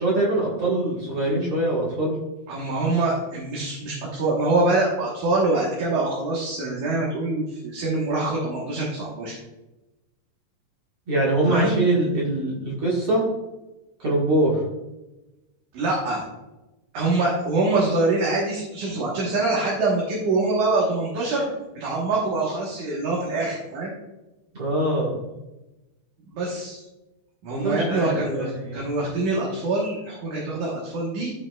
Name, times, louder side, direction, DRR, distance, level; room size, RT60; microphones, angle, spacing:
voice 1, 0.0-2.1 11.1-13.2 14.0-14.5 24.5-25.2 27.5-28.9, right 1 dB, 45° right, -5 dB, 1.9 m, -23 dB
voice 2, 2.5-9.4 11.5-11.8 15.7-16.2 16.9-21.5 21.8-23.9 26.3-26.8 27.4-31.3, right 2 dB, 65° right, -4 dB, 2.5 m, -24 dB
14.5 x 5.8 x 2.3 m, 1.0 s
omnidirectional pair, 4.3 m